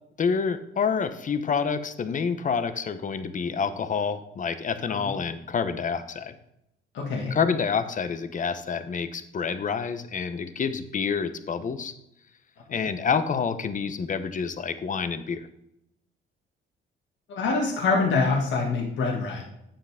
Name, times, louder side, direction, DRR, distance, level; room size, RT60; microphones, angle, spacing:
voice 1, 0.2-6.3 7.3-11.9 12.7-15.5, left 6 dB, 40° left, 10 dB, 0.9 m, -28 dB
voice 2, 6.9-7.4 17.3-19.4, left 4 dB, 70° left, -1 dB, 1.9 m, -25 dB
8.9 x 7.6 x 3.5 m, 0.82 s
cardioid pair, 90°, 20 cm